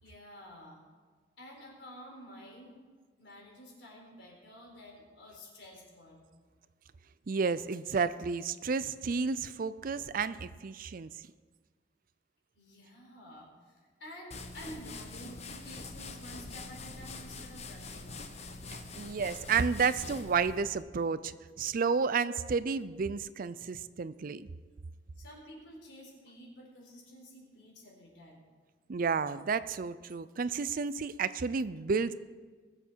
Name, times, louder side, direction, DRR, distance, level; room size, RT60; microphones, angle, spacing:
voice 1, 0.0-0.8 1.4-2.8 3.1-6.3 12.5-13.7 14.0-18.2 25.2-28.5, equal, 75° left, -1 dB, 4.3 m, -50 dB
voice 2, 7.3-11.1 18.7-24.5 28.9-32.1, right 5 dB, 50° right, 15 dB, 0.5 m, -31 dB
sound 1, 14.3-20.8, left 3 dB, 35° left, 0.9 m, -44 dB
20.0 x 7.8 x 4.6 m, 1.5 s
head